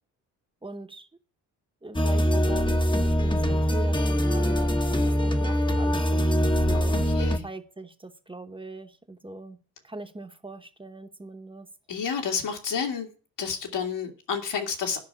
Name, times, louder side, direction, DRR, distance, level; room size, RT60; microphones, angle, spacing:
voice 1, 0.6-1.1 1.8-7.0 7.4-11.7, right 2 dB, 10° right, 0.9 m, -41 dB
sound 1, 1.9-7.4, equal, 10° left, 0.8 m, -23 dB
voice 2, 6.7-7.5 11.9-13.1 13.4-15.0, left 6 dB, 80° left, 2.4 m, -30 dB
12.5 x 5.9 x 8.6 m
wide cardioid pair, 150°, 42 cm